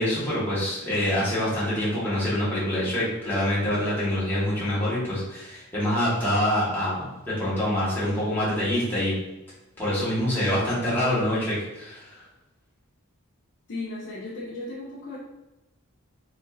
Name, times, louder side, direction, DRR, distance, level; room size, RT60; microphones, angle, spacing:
voice 1, 0.0-9.2 9.8-12.1, left 1 dB, 10° left, -9 dB, 1.1 m, -25 dB
voice 2, 13.7-15.2, left 2 dB, 65° left, -9 dB, 0.8 m, -35 dB
4.4 x 2.5 x 2.4 m, 0.99 s
head